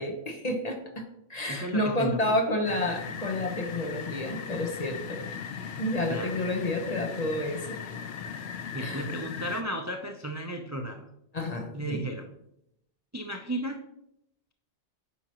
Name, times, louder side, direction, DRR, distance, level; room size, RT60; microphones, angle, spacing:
voice 1, 0.0-5.2 5.8-7.8 8.8-9.1 11.3-12.1, left 1 dB, 35° left, 4 dB, 1.0 m, -30 dB
voice 2, 1.5-2.4 6.1-6.3 8.7-11.1 11.7-12.3 13.1-13.8, right 1 dB, 30° right, 4 dB, 0.3 m, -34 dB
sound 1, 2.6-9.6, left 6 dB, 70° left, 0.9 m, -38 dB
9.5 x 5.8 x 2.9 m, 0.79 s
omnidirectional pair, 1.2 m